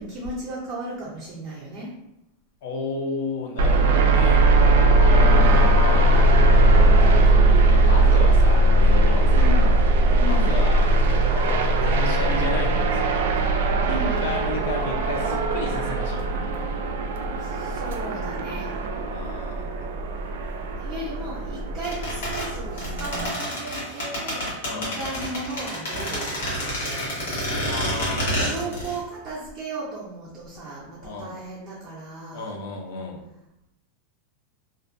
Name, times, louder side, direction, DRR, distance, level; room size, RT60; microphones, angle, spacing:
voice 1, 0.0-1.9 5.2-5.9 9.3-9.8 10.1-10.5 13.8-14.2 17.4-18.7 20.8-27.3 28.4-32.5, right 1 dB, 30° right, -6 dB, 0.5 m, -35 dB
voice 2, 2.6-4.5 4.9-6.4 7.3-9.5 10.2-13.2 13.9-16.8 19.1-20.0 24.6-25.0 27.7-28.9 31.0-31.3 32.3-33.2, left 3 dB, 60° left, 1 dB, 0.6 m, -33 dB
sound 1, 3.6-23.3, right 2 dB, 85° right, 0.3 m, -19 dB
sound 2, 21.8-29.0 29.3-29.4, equal, 90° left, 1.2 m, -28 dB
2.5 x 2.2 x 2.5 m, 0.87 s
supercardioid pair, 170°, 0 cm